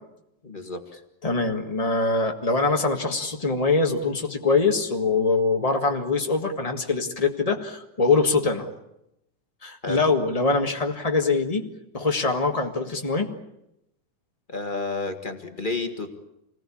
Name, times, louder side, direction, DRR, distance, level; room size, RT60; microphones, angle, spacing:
voice 1, 0.4-0.9 9.8-10.0 14.5-16.3, left 3 dB, 25° left, 5 dB, 1.0 m, -31 dB
voice 2, 1.2-8.7 9.6-11.6 11.9-13.3, left 3 dB, 50° left, 2 dB, 0.4 m, -23 dB
28.0 x 20.0 x 8.6 m, 0.85 s
omnidirectional pair, 3.9 m